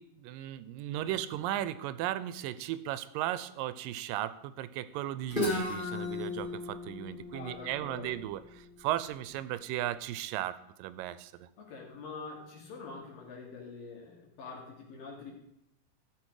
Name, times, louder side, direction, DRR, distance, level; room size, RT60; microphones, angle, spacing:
voice 1, 0.0-11.5, right 13 dB, 85° right, 15 dB, 2.2 m, -36 dB
Guitar, 5.3-9.1, left 3 dB, 20° left, 1.5 m, -36 dB
voice 2, 7.3-8.2 11.6-15.3, left 4 dB, 75° left, -1 dB, 4.2 m, -45 dB
13.5 x 7.6 x 4.9 m, 0.81 s
omnidirectional pair, 3.9 m